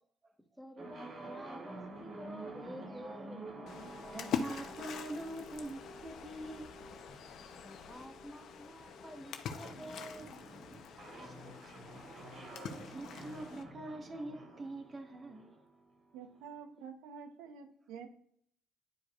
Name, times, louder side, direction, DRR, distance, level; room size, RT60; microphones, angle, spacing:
voice 1, 0.6-3.7 7.6-10.3, equal, 5° right, 6 dB, 1.1 m, -50 dB
sound 1, 0.8-16.5, right 2 dB, 50° right, 1.4 m, -50 dB
Splash splatter, 3.7-13.6, left 7 dB, 65° left, 0.7 m, -44 dB
voice 2, 4.1-6.8 11.2-11.7 12.8-15.6, right 1 dB, 35° right, 4 dB, 1.5 m, -44 dB
voice 3, 16.1-18.1, right 6 dB, 80° right, 8 dB, 0.9 m, -48 dB
10.5 x 4.8 x 2.4 m, 0.66 s
supercardioid pair, 70°, 0 cm